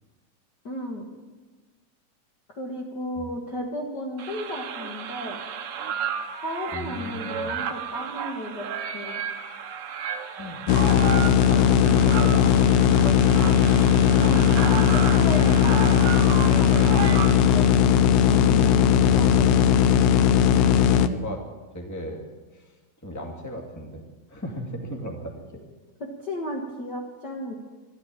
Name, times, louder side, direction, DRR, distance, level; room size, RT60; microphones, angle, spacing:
voice 1, 0.6-1.1 2.5-5.4 6.4-8.7 8.9-9.2 14.2-16.1 16.6-18.0 18.3-19.5 26.0-27.5, left 1 dB, 45° left, -1 dB, 1.6 m, -34 dB
sound 1, 4.2-17.7, right 7 dB, 65° right, 1.5 m, -33 dB
voice 2, 6.7-7.6 10.4-13.3 18.9-20.1 21.1-21.4 21.7-22.3 22.5-22.7 23.0-25.4, equal, 5° left, 2 dB, 1.6 m, -36 dB
sound 2, 10.7-21.1, left 8 dB, 80° left, 1.5 m, -18 dB
12.5 x 12.5 x 8.8 m, 1.3 s
omnidirectional pair, 3.8 m